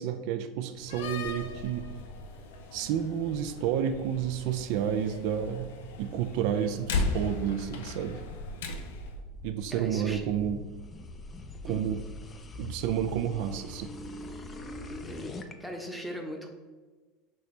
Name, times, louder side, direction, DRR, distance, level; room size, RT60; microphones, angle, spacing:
voice 1, 0.0-1.9 2.7-5.7 6.0-8.2 9.4-10.6 11.7-12.0 12.6-13.9, right 9 dB, 65° right, 8 dB, 0.3 m, -30 dB
Slam, 0.8-9.2, left 3 dB, 80° left, 0.5 m, -37 dB
sound 1, 8.0-15.5, left 1 dB, 25° left, 0.5 m, -43 dB
voice 2, 9.7-10.2 11.7-11.8 14.9-16.5, equal, ahead, 2 dB, 0.8 m, -39 dB
6.0 x 2.7 x 3.1 m, 1.3 s
supercardioid pair, 110°, 0 cm